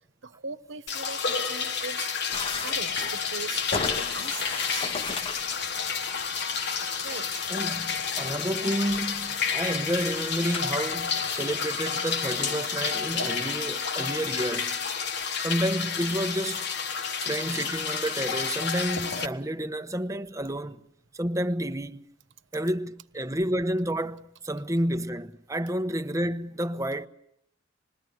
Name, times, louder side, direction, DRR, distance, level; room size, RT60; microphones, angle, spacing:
voice 1, 0.2-2.1 2.6-5.0 7.0-7.4, right 4 dB, 75° right, 1.4 m, -40 dB
sound 1, 0.9-19.3, left 6 dB, 60° left, 1.4 m, -30 dB
sound 2, 2.3-11.6, left 4 dB, 30° left, 1.0 m, -39 dB
voice 2, 7.5-14.8 15.4-16.7 17.2-20.8 21.1-22.0 22.5-27.1, right 1 dB, 15° right, 1.0 m, -30 dB
26.5 x 21.5 x 9.5 m
head